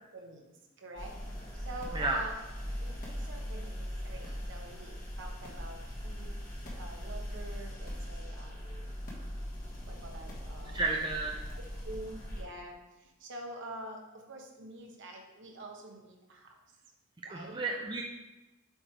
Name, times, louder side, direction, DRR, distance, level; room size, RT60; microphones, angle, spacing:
voice 1, 0.1-0.5 0.8-1.1 1.5-2.3 2.8-6.4 6.8-8.9 9.9-10.8 11.5-16.5 17.2-17.6, right 2 dB, 55° right, 2 dB, 1.0 m, -46 dB
sound 1, 1.0-12.4, equal, 40° left, 1.4 m, -40 dB
voice 2, 10.7-11.4 17.3-18.0, right 3 dB, 20° right, -1 dB, 0.5 m, -32 dB
7.8 x 3.2 x 4.5 m, 1.1 s
head